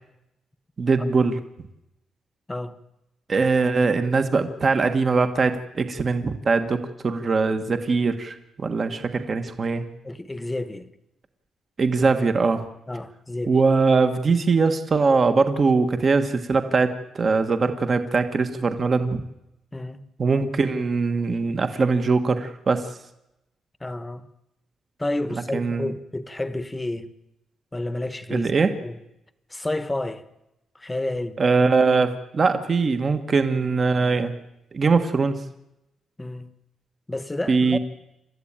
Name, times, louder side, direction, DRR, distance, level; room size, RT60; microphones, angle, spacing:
voice 1, 0.8-1.4 3.3-9.8 11.8-12.6 13.5-19.2 20.2-22.9 25.3-25.9 28.3-28.7 31.4-34.3 34.7-35.4 37.5-37.8, right 4 dB, 35° right, 1.5 m, -21 dB
voice 2, 2.5-2.8 10.0-10.9 12.9-13.6 19.7-20.1 23.8-24.3 25.0-27.1 27.7-29.0 29.5-30.2 30.7-31.4 36.2-36.5 37.1-37.8, left 2 dB, 10° left, 1.2 m, -30 dB
28.5 x 13.5 x 8.9 m
cardioid pair, 135°, 0 cm